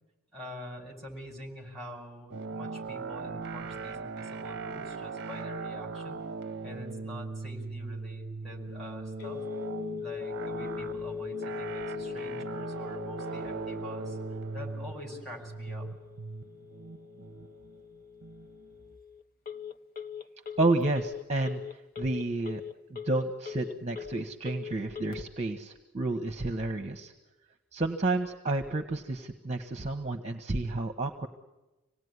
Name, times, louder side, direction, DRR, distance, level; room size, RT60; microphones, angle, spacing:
voice 1, 0.3-6.2 6.6-9.4 10.0-14.2 14.5-15.9, left 1 dB, ahead, 0 dB, 5.5 m, -45 dB
sound 1, 2.3-18.8, right 4 dB, 50° right, 0.8 m, -39 dB
Telephone, 9.2-25.2, left 7 dB, 40° left, 0.9 m, -41 dB
voice 2, 20.6-22.6 22.9-27.1 27.7-31.3, right 2 dB, 30° right, 6 dB, 1.2 m, -30 dB
26.0 x 18.5 x 9.6 m, 1.1 s
head